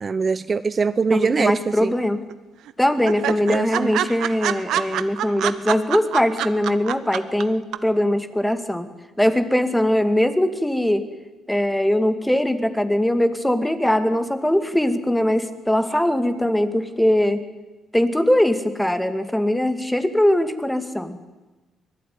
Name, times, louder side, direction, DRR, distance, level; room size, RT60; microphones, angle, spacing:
voice 1, 0.0-1.9 3.3-3.9, right 5 dB, 35° right, 14 dB, 0.7 m, -22 dB
voice 2, 1.1-2.2 2.8-8.9 9.2-11.0 11.5-17.4 17.9-21.2, left 1 dB, 5° left, 9 dB, 2.3 m, -21 dB
sound 1, 1.4-2.0 2.3-2.4 2.7-2.8 3.1-7.4 7.7-7.8, right 11 dB, 80° right, 1.1 m, -25 dB
24.5 x 18.5 x 9.5 m, 1.2 s
cardioid pair, 90°, 0 cm